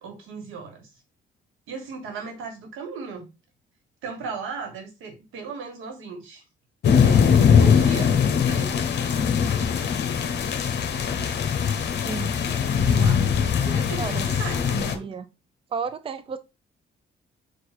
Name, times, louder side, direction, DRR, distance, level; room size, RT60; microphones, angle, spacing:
voice 1, 0.0-0.9 1.7-3.3 4.0-6.4 7.0-8.8 12.1-15.1, right 5 dB, 90° right, 1.4 m, -37 dB
sound 1, 6.8-15.0, left 7 dB, 60° left, 0.8 m, -21 dB
voice 2, 13.7-14.3 14.7-15.3 15.7-16.4, right 5 dB, 30° right, 0.5 m, -33 dB
4.8 x 2.4 x 4.2 m
cardioid pair, 90°, 20 cm